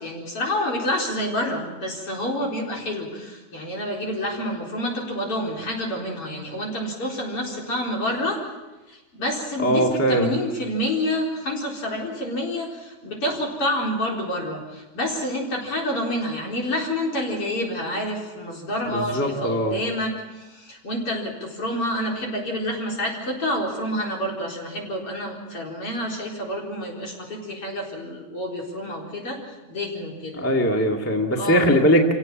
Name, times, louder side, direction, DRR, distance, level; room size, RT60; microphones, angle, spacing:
voice 1, 0.0-8.5 8.9-29.4 29.7-30.4 31.3-31.7, left 1 dB, 45° left, -2 dB, 5.0 m, -28 dB
voice 2, 9.6-10.3 18.8-19.8 30.3-32.0, equal, 5° left, 2 dB, 1.5 m, -20 dB
27.0 x 17.0 x 7.4 m, 1.1 s
omnidirectional pair, 3.6 m